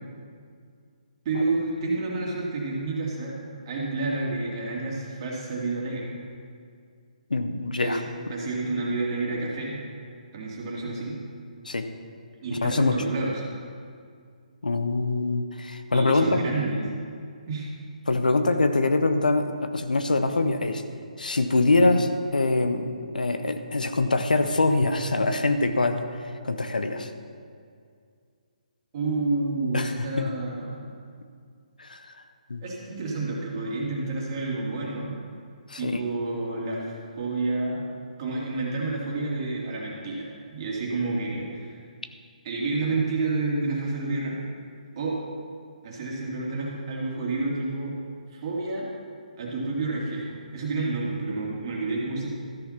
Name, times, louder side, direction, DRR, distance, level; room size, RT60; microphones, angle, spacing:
voice 1, 1.2-3.4 3.7-6.2 7.8-8.0 8.3-9.8 10.3-11.2 12.4-13.4 15.9-16.8 17.5-17.7 28.9-30.8 32.6-35.1 35.8-37.9 38.2-41.8 42.4-44.4 44.9-45.2 45.8-48.0 48.3-48.9 49.4-52.3, right 3 dB, 35° right, -3 dB, 2.5 m, -29 dB
voice 2, 7.3-8.0 11.6-11.9 12.5-12.9 14.6-16.4 18.1-20.8 21.2-26.0 26.4-27.1 29.7-30.3 31.8-32.1 32.5-32.6 35.7-36.0, left 2 dB, 80° left, 8 dB, 0.8 m, -24 dB
13.5 x 5.8 x 5.8 m, 2.2 s
figure-of-eight pair, 145°, 4 cm